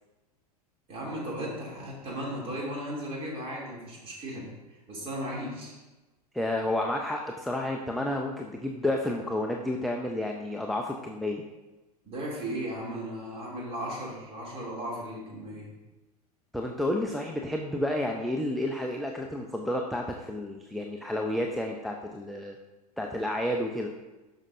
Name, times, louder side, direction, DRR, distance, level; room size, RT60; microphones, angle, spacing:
voice 1, 0.9-5.7 12.0-15.7, equal, 30° right, -3 dB, 2.7 m, -36 dB
voice 2, 6.3-11.4 16.5-22.6 23.0-23.9, left 1 dB, ahead, 1 dB, 0.4 m, -30 dB
12.0 x 5.4 x 2.6 m, 1.1 s
figure-of-eight pair, 90°, 20 cm